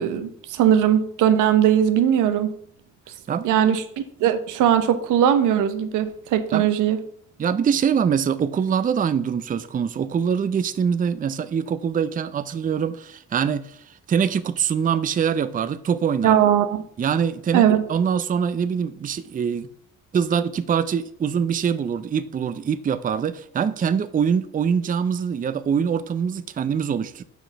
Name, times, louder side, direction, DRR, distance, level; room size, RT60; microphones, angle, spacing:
voice 1, 0.0-2.5 3.4-7.0 16.2-16.8 17.5-17.8, right 9 dB, 90° right, 0.8 m, -19 dB
voice 2, 3.3-3.6 6.5-6.7 7.4-13.8 14.1-16.4 17.0-19.7 20.1-27.2, right 7 dB, 30° right, 0.5 m, -24 dB
6.1 x 5.0 x 5.6 m
cardioid pair, 90°, 30 cm